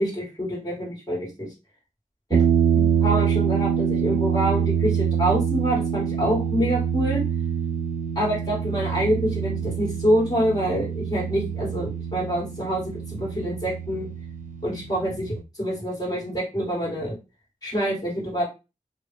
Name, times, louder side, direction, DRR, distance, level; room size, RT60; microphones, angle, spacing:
voice 1, 0.0-1.5 2.7-7.2 8.2-14.1 14.6-17.2 17.6-18.4, equal, 25° left, -5 dB, 2.2 m, -26 dB
sound 1, 2.3-15.4, right 7 dB, 70° right, 0.4 m, -25 dB
3.2 x 2.7 x 3.5 m, 0.28 s
wide cardioid pair, 70°, 14 cm